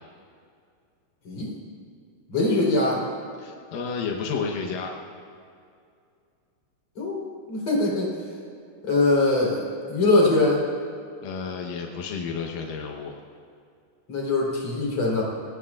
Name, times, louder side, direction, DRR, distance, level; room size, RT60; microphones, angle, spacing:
voice 1, 2.3-3.0 7.0-8.1 8.8-9.6 9.9-10.6 14.1-15.2, left 2 dB, 30° left, -3 dB, 4.0 m, -22 dB
voice 2, 3.4-4.9 11.2-13.2, left 5 dB, 85° left, 1 dB, 1.9 m, -31 dB
27.0 x 17.5 x 2.5 m, 2.4 s
omnidirectional pair, 5.7 m